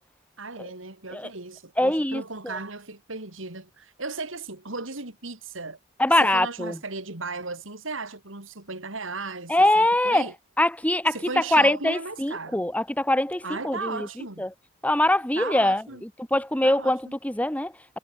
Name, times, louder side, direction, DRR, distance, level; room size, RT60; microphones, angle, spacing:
voice 1, 0.4-5.8 6.1-10.3 11.1-12.6 13.4-14.5 15.3-16.0 16.6-17.1, right 3 dB, 75° right, 3.8 m, -36 dB
voice 2, 1.8-2.2 6.0-6.7 9.5-10.3 10.6-11.1 11.5-14.0 14.4-14.5 14.8-15.8 16.3-17.7, left 1 dB, 5° left, 1.5 m, -22 dB
head